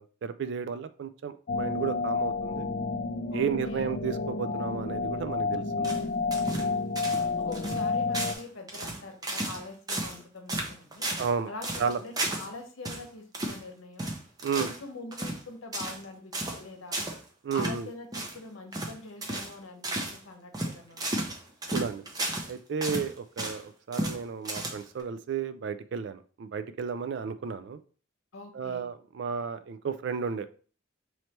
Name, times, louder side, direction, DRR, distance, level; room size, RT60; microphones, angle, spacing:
voice 1, 0.0-2.7 3.3-6.0 11.2-11.5 11.8-12.0 14.4-14.7 17.4-17.9 21.7-22.0 22.5-27.8 28.5-30.5, right 6 dB, 60° right, 12 dB, 0.3 m, -33 dB
sound 1, 1.5-8.3, left 4 dB, 40° left, 0.4 m, -30 dB
voice 2, 3.3-3.9 7.4-11.1 11.5-14.1 14.6-17.0 17.5-21.3 28.3-28.9, left 3 dB, 80° left, 4 dB, 0.9 m, -44 dB
sound 2, 5.8-6.7 7.0-7.3 7.5-7.8 8.1-8.4 8.7-9.6 9.9-10.2 10.5-11.3 11.6-12.5 12.8-13.0 13.3-13.6 14.0-14.8 15.1-15.4 15.7-16.0 16.3-16.6 16.9-17.2 17.5-17.8 18.1-18.4 18.7-18.9 19.2-19.5 19.8-20.2 20.5-22.5 22.8-23.6 23.9-24.2 24.4-25.0, right 1 dB, 20° right, 0.6 m, -33 dB
3.2 x 3.1 x 4.2 m, 0.41 s
head